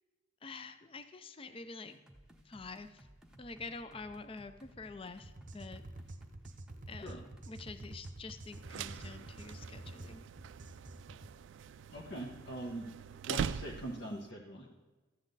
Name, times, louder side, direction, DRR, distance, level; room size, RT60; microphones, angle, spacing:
voice 1, 0.4-2.0 2.4-3.1 3.4-5.8 6.9-10.2, left 3 dB, 25° left, 10 dB, 0.4 m, -47 dB
sound 1, 1.8-9.1, equal, 5° right, 0.8 m, -59 dB
sound 2, 5.2-11.3, right 2 dB, 40° right, 0.7 m, -49 dB
sound 3, 8.5-14.2, right 7 dB, 65° right, 0.3 m, -42 dB
voice 2, 11.9-12.9 13.3-14.7, right 1 dB, 55° left, -2 dB, 1.1 m, -42 dB
13.5 x 8.4 x 4.0 m, 1.2 s
head